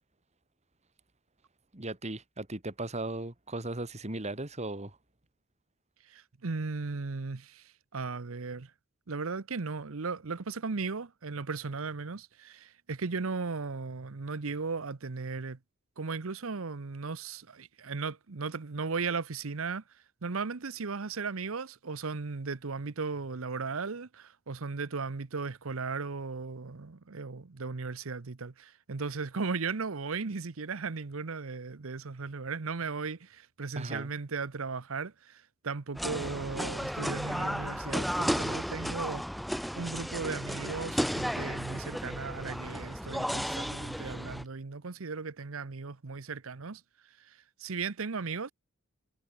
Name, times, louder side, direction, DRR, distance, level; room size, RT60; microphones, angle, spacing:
voice 1, 1.7-5.0 33.8-34.1, right 2 dB, 30° right, 2.3 m, -37 dB
voice 2, 6.1-8.7 9.1-15.6 16.0-19.8 20.2-39.2 39.7-46.8 47.2-48.5, right 4 dB, 70° right, 0.8 m, -36 dB
sound 1, 35.9-44.4, equal, ahead, 1.9 m, -34 dB
head